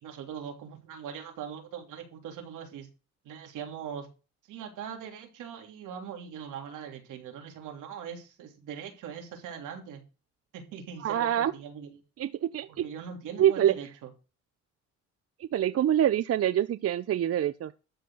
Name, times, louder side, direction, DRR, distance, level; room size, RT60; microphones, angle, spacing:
voice 1, 0.0-2.9 3.2-4.1 4.5-10.0 10.5-12.0 12.7-14.1, right 8 dB, 90° right, 3 dB, 3.3 m, -41 dB
voice 2, 11.0-11.5 12.2-12.8 13.4-13.7 15.4-17.7, right 11 dB, 50° right, 14 dB, 0.7 m, -25 dB
12.5 x 4.3 x 7.8 m, 0.32 s
cardioid pair, 90°, 30 cm